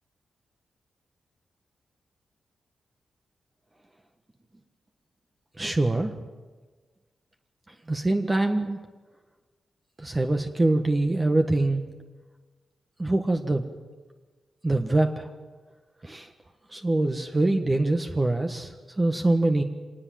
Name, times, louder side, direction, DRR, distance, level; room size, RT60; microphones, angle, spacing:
voice 1, 5.6-6.1 7.9-8.8 10.0-11.8 13.0-13.6 14.6-15.3 16.0-16.3 16.7-19.6, right 2 dB, 25° right, 5 dB, 1.4 m, -24 dB
24.5 x 19.0 x 7.7 m, 1.4 s
cardioid pair, 75°, 0 cm